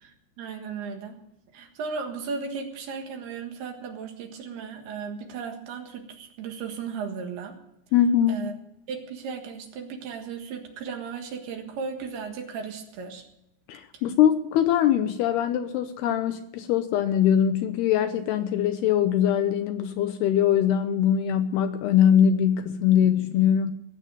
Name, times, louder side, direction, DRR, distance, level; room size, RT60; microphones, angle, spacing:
voice 1, 0.0-1.2 1.5-7.6 8.3-8.5 8.9-13.2, right 5 dB, 65° right, 4 dB, 3.4 m, -35 dB
voice 2, 7.9-8.4 13.7-23.7, left 9 dB, 80° left, 9 dB, 2.5 m, -22 dB
19.0 x 8.1 x 7.6 m, 0.84 s
omnidirectional pair, 5.2 m